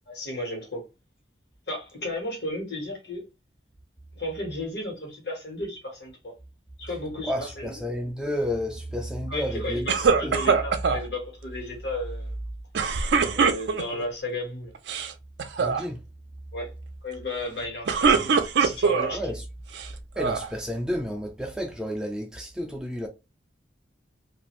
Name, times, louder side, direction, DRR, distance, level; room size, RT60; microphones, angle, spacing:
voice 1, 0.1-0.8 1.7-3.2 4.1-6.3 6.8-7.8 9.3-12.3 13.3-14.7 16.5-16.7 17.0-19.2, left 1 dB, 65° left, 1.3 m, -34 dB
voice 2, 7.2-10.4 15.6-16.0 19.1-19.4 19.9-23.1, equal, 5° right, 0.3 m, -31 dB
sound 1, 9.9-11.0 12.7-14.0 14.7-15.1 15.4-15.8 17.6-19.2 19.7-20.5, right 5 dB, 75° right, 0.4 m, -23 dB
2.5 x 2.5 x 3.0 m
head